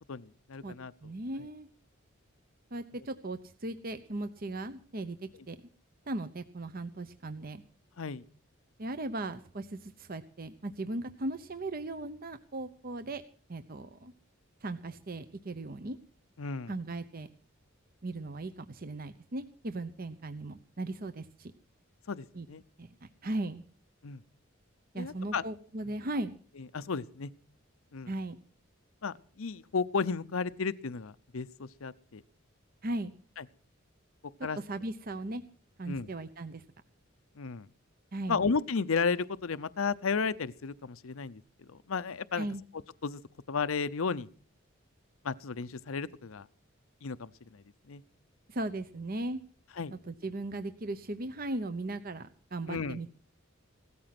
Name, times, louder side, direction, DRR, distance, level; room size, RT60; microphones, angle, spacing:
voice 1, 0.1-0.9 8.0-8.2 16.4-16.7 22.1-22.6 24.0-24.2 24.9-25.4 26.7-27.3 27.9-28.1 29.0-32.2 33.4-33.5 34.4-34.6 35.9-36.1 37.4-37.7 38.3-41.4 41.9-42.5 43.0-43.2 43.5-44.3 45.2-46.4 47.0-47.6 47.9-48.0 49.8-49.9 52.7-53.0, left 5 dB, 85° left, 15 dB, 0.7 m, -33 dB
voice 2, 1.0-1.7 2.7-5.2 5.5-5.6 6.1-7.6 8.8-13.2 13.5-14.1 14.6-16.0 16.7-17.3 18.0-21.5 22.3-22.5 22.8-23.6 24.9-26.3 28.1-28.4 32.8-33.1 34.6-35.4 35.8-36.6 38.1-38.4 42.4-42.6 48.5-49.4 49.9-53.1, right 2 dB, 45° right, 11 dB, 0.8 m, -37 dB
17.0 x 14.0 x 5.9 m, 0.41 s
head